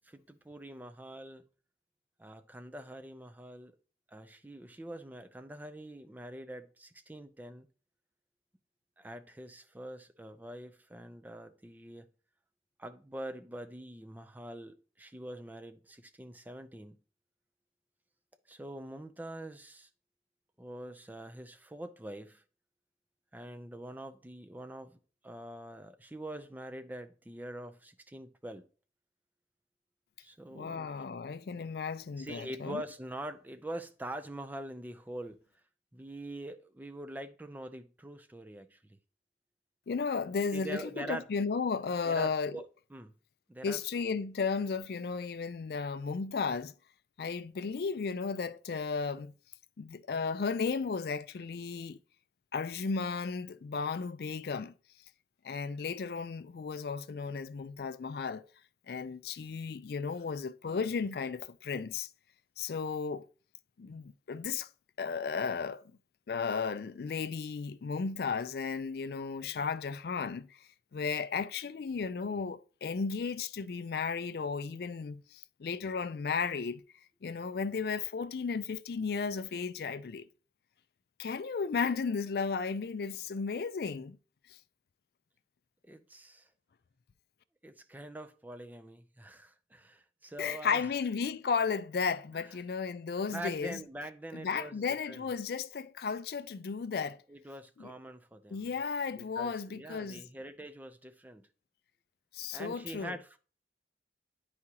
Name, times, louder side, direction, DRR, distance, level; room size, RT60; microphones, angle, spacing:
voice 1, 0.0-1.4 2.2-3.7 4.1-7.7 9.0-12.1 12.8-17.0 18.5-19.9 20.6-22.4 23.3-28.6 30.2-30.9 32.2-35.4 35.9-39.0 40.5-41.3 42.0-43.1 43.5-43.8 85.8-86.5 87.6-90.9 93.3-95.2 97.3-98.8 99.1-101.5 102.5-103.4, right 1 dB, 10° right, 0.4 m, -44 dB
voice 2, 30.5-32.8 39.9-42.6 43.6-46.7 47.2-49.3 49.8-52.0 52.5-54.7 55.4-58.4 58.9-62.1 62.6-63.2 63.8-64.7 65.0-65.8 66.3-70.6 70.9-76.8 77.2-80.3 81.2-84.2 84.5-84.6 90.4-93.8 94.3-97.2 97.8-97.9 98.5-100.2 102.3-103.2, left 5 dB, 55° left, 0.4 m, -34 dB
9.6 x 4.8 x 2.9 m
head